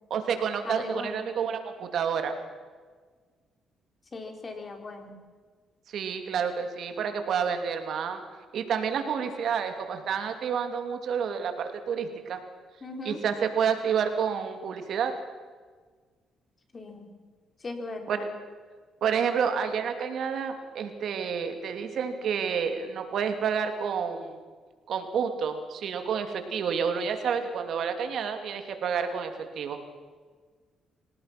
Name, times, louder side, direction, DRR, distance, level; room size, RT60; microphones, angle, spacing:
voice 1, 0.1-2.3 5.9-8.2 8.5-12.4 13.0-15.1 18.1-18.2 19.0-24.4 24.9-29.8, right 7 dB, 70° right, 7 dB, 2.6 m, -29 dB
voice 2, 0.6-1.2 4.1-5.2 12.8-13.2 16.7-17.1 17.6-18.3, left 2 dB, 35° left, 4 dB, 4.1 m, -38 dB
26.0 x 17.5 x 6.0 m, 1.5 s
cardioid pair, 90°, 0 cm